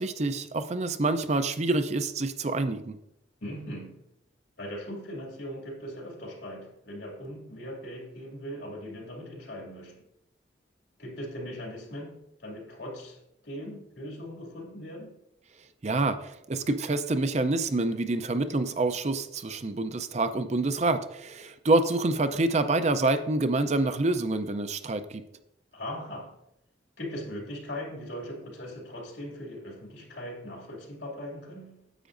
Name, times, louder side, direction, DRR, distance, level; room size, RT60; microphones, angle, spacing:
voice 1, 0.0-3.0 15.8-25.2, right 2 dB, 35° right, 0.5 m, -27 dB
voice 2, 3.4-4.0 4.6-10.0 11.0-15.1 25.7-26.4 27.0-31.8, equal, 85° left, 2.5 m, -39 dB
10.0 x 7.9 x 2.6 m
head